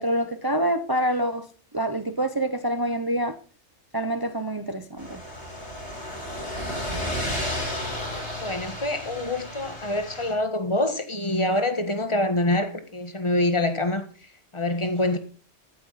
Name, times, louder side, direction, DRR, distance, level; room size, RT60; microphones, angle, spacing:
voice 1, 0.0-1.5 1.7-3.3 3.9-5.2, right 1 dB, 25° right, 0.6 m, -26 dB
sound 1, 5.0-10.3, left 1 dB, 60° left, 4.8 m, -32 dB
voice 2, 6.9-7.3 8.4-14.0 14.5-15.2, left 1 dB, 25° left, 1.5 m, -26 dB
14.5 x 9.1 x 4.1 m
omnidirectional pair, 1.3 m